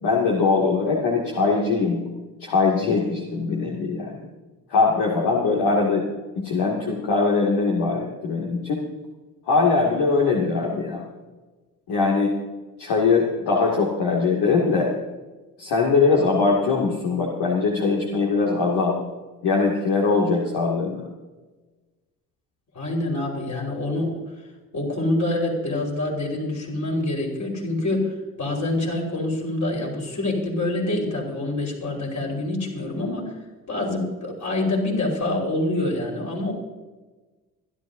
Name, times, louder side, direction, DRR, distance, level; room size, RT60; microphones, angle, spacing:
voice 1, 0.0-2.0 2.4-4.3 4.7-6.1 6.4-8.8 9.5-11.0 11.9-12.3 12.8-14.9 15.6-19.0 19.4-21.1, left 4 dB, 50° left, -2 dB, 2.6 m, -21 dB
voice 2, 22.7-24.2 24.7-33.3 33.7-36.5, left 2 dB, 35° left, -1 dB, 5.1 m, -26 dB
27.0 x 12.0 x 2.8 m, 1.2 s
figure-of-eight pair, 50°, 48 cm